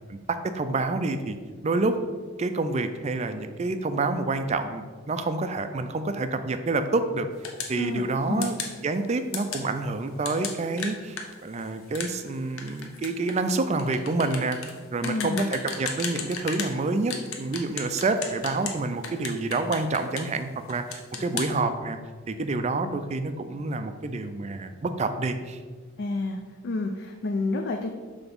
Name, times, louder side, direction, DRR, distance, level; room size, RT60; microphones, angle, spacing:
voice 1, 0.1-1.4 1.6-2.0 2.4-7.3 7.7-8.6 8.8-14.6 14.9-22.0 22.3-25.6, right 3 dB, 30° right, 9 dB, 0.3 m, -28 dB
sound 1, 7.4-7.8 8.4-8.8 9.3-9.7 10.2-16.7 17.1-18.8 19.0-20.4 20.7-21.5, left 5 dB, 70° left, 0.8 m, -34 dB
voice 2, 7.8-8.5 15.0-15.5 26.0-27.9, left 2 dB, 50° left, 4 dB, 0.4 m, -30 dB
6.0 x 3.4 x 5.3 m, 1.5 s
head